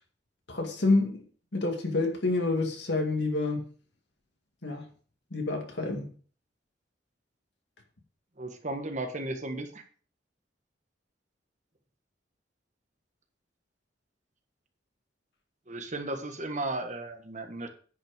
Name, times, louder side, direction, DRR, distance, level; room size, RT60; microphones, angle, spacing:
voice 1, 0.5-1.2 1.5-3.7 4.6-4.9 5.3-6.1, left 2 dB, 70° left, 2.1 m, -28 dB
voice 2, 8.4-9.8 15.7-17.7, right 2 dB, 40° right, 1.5 m, -35 dB
10.0 x 5.8 x 5.1 m
head